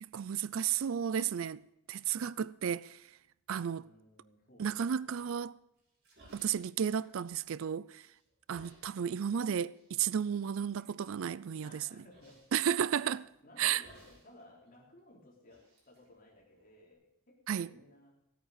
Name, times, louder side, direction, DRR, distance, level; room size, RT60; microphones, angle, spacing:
voice 1, 0.0-1.6 1.9-3.0 3.5-3.8 4.6-5.6 6.3-8.1 8.5-11.9 12.5-13.3 13.6-13.8 17.5-17.7, right 8 dB, 65° right, 0.4 m, -33 dB
voice 2, 3.7-5.2 11.6-12.4 13.4-18.2, left 1 dB, 40° left, 4.0 m, -59 dB
sound 1, 5.8-7.6 7.9-8.9 9.7-9.9 10.4-10.9 12.1-12.6 13.8-14.4 14.7-14.8 15.4-16.9, right 1 dB, 50° right, 6.0 m, -60 dB
16.0 x 8.9 x 6.7 m
head